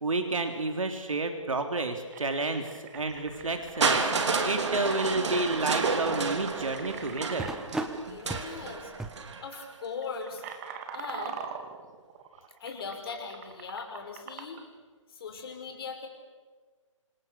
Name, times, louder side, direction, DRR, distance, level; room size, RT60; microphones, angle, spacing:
voice 1, 0.0-2.7 2.9-4.1 4.4-7.5, right 2 dB, 75° right, 5 dB, 3.3 m, -30 dB
sound 1, 2.1-7.5 8.5-8.7 9.0-9.3 9.9-14.6, right 7 dB, 30° right, 2.6 m, -43 dB
sound 2, 3.0-9.3, right 2 dB, 5° right, 1.2 m, -41 dB
Crushing, 3.8-9.7 10.7-10.8, right 4 dB, 60° right, 3.4 m, -30 dB
voice 2, 8.0-8.9 9.4-10.5 10.9-11.5 12.6-14.6 15.1-16.1, left 5 dB, 45° left, 3 dB, 5.8 m, -39 dB
28.0 x 27.0 x 7.0 m, 1.5 s
figure-of-eight pair, 140°, 17 cm